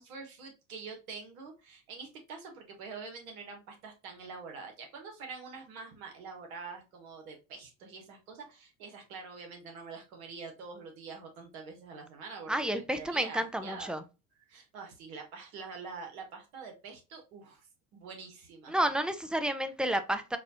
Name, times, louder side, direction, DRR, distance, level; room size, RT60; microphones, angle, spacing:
voice 1, 0.0-14.0 14.5-17.7 17.9-18.8, right 4 dB, 70° right, 1.5 m, -45 dB
voice 2, 12.5-14.0 18.7-20.4, right 1 dB, ahead, 0.4 m, -30 dB
4.8 x 2.4 x 2.7 m
hypercardioid pair, 70°, 44 cm